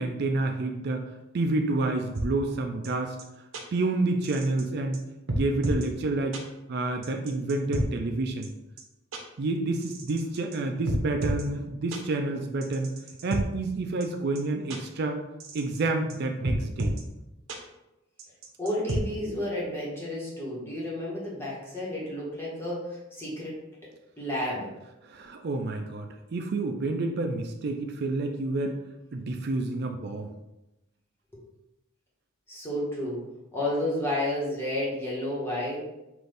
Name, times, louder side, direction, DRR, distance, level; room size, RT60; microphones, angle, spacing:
voice 1, 0.0-3.2 3.7-5.0 5.3-6.4 6.7-8.5 9.4-12.9 13.2-15.2 15.5-16.9 25.0-28.8 29.1-30.3, right 2 dB, 50° right, 4 dB, 0.4 m, -29 dB
sound 1, 2.1-2.3 2.8-2.9 3.2-3.3 3.5-3.6 4.2-4.6 4.9-5.0 5.3-5.9 6.3-6.4 7.0-7.8 8.4-8.5 8.8-8.9 9.1-9.2 9.8-10.6 10.9-11.4 11.9-12.0 12.6-13.4 14.0-14.1 14.4-14.5 14.7-14.8 15.4-15.8 16.1-16.2 16.4-17.0 17.5-17.6 18.2-19.0, right 1 dB, 75° right, 0.8 m, -30 dB
voice 2, 18.6-23.6 24.2-24.7 31.3-31.4 32.5-33.2 33.5-35.8, left 1 dB, 10° left, -6 dB, 1.3 m, -31 dB
5.9 x 2.6 x 3.4 m, 0.96 s
head